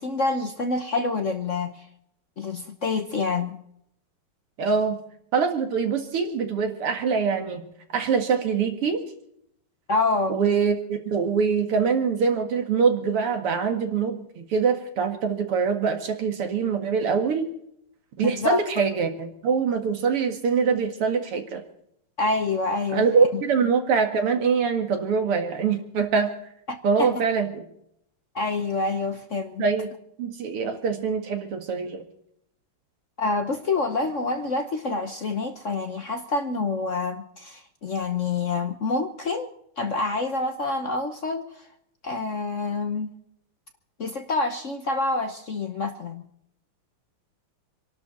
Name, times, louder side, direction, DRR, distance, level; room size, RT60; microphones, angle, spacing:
voice 1, 0.0-1.9 2.4-3.6 9.9-10.4 18.2-18.6 22.2-23.1 23.3-23.4 26.7-27.1 28.3-29.6 33.2-39.5 39.8-41.6 42.0-43.1 44.0-46.2, left 3 dB, 50° left, 1.0 m, -27 dB
voice 2, 4.6-5.0 5.3-7.6 7.9-9.0 10.3-17.5 18.2-21.6 22.9-26.3 26.8-27.6 29.6-29.9 30.2-32.0, right 5 dB, 90° right, 2.9 m, -24 dB
26.5 x 12.0 x 4.4 m
omnidirectional pair, 2.4 m